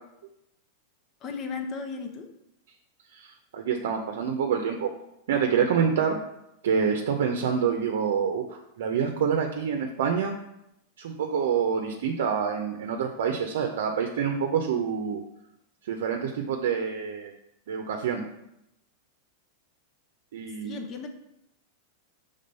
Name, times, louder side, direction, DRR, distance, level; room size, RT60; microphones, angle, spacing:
voice 1, 1.2-2.3 20.6-21.1, left 5 dB, 35° left, 5 dB, 0.7 m, -35 dB
voice 2, 3.1-4.9 5.3-6.2 6.6-10.4 11.0-15.2 15.9-17.3 17.7-18.3 20.3-20.8, right 7 dB, 75° right, 3 dB, 0.6 m, -27 dB
5.2 x 3.6 x 5.4 m, 0.84 s
supercardioid pair, 130°, 0 cm